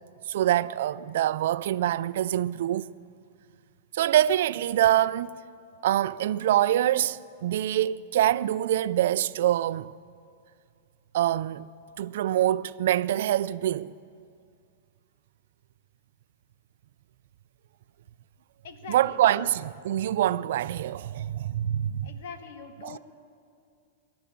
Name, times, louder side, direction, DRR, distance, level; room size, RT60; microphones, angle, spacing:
voice 1, 0.3-2.9 3.9-5.4 5.8-9.9 11.1-11.7 12.0-14.0 18.9-22.1 22.8-23.0, right 12 dB, 70° right, 0.3 m, -25 dB
voice 2, 18.6-19.5 22.0-23.0, left 6 dB, 65° left, 1.5 m, -43 dB
20.5 x 7.0 x 8.6 m
supercardioid pair, 155°, 0 cm